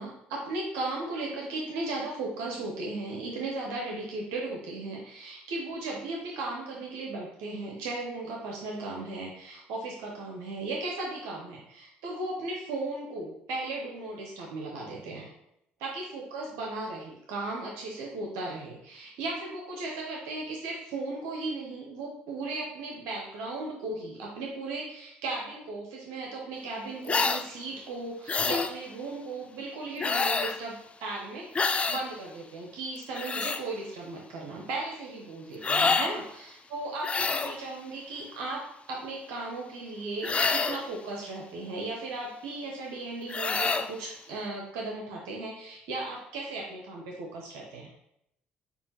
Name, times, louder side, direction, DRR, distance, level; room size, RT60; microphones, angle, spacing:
voice 1, 0.0-15.3 15.8-47.9, right 2 dB, 85° right, -2 dB, 0.8 m, -36 dB
sound 1, 27.1-27.4 28.3-28.7 30.0-30.6 31.5-32.0 33.0-33.6 35.6-36.1 37.0-37.6 40.2-40.9 43.3-43.9, left 4 dB, 30° left, 0.3 m, -27 dB
6.7 x 2.5 x 2.9 m, 0.77 s
supercardioid pair, 70°, 4 cm